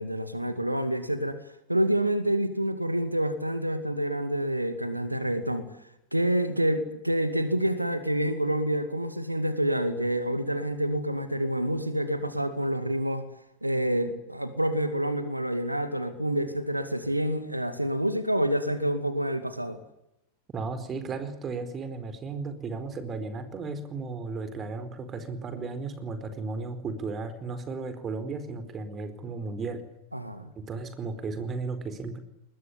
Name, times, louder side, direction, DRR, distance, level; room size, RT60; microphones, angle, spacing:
voice 1, 0.0-1.4 1.7-5.6 6.1-13.2 13.6-19.8 30.1-30.5, right 1 dB, 85° right, 11 dB, 2.2 m, -28 dB
voice 2, 20.5-29.8 30.5-32.2, right 4 dB, 25° right, 10 dB, 4.4 m, -35 dB
23.5 x 21.0 x 9.8 m, 0.84 s
figure-of-eight pair, 90°, 0 cm